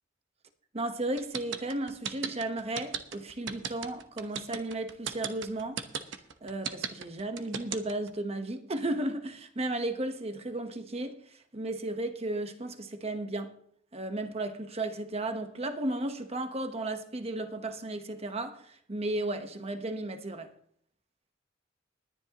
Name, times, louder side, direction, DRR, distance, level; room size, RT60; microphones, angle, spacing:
voice 1, 0.7-5.8 6.4-11.2 11.5-13.5 13.9-20.5, right 2 dB, 35° right, 1.1 m, -34 dB
sound 1, 1.2-8.1, right 7 dB, 70° right, 1.0 m, -35 dB
20.0 x 10.5 x 3.0 m
head